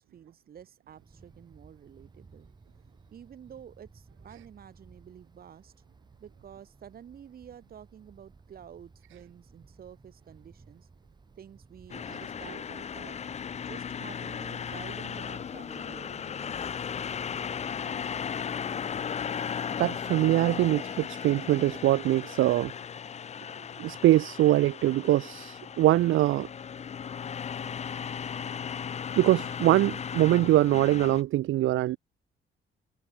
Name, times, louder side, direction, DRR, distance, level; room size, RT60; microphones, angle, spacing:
voice 1, 0.0-2.5 3.1-5.7 6.2-10.9 11.4-13.2 13.6-16.9, right 9 dB, 45° right, 1.4 m, -50 dB
Wind, 0.9-19.3, right 4 dB, 20° right, 7.4 m, -56 dB
sound 1, 11.9-31.2, left 7 dB, 30° left, 0.7 m, -36 dB
voice 2, 19.8-22.7 23.8-26.5 29.2-32.0, right 15 dB, 70° right, 0.4 m, -23 dB
wide cardioid pair, 175°, 21 cm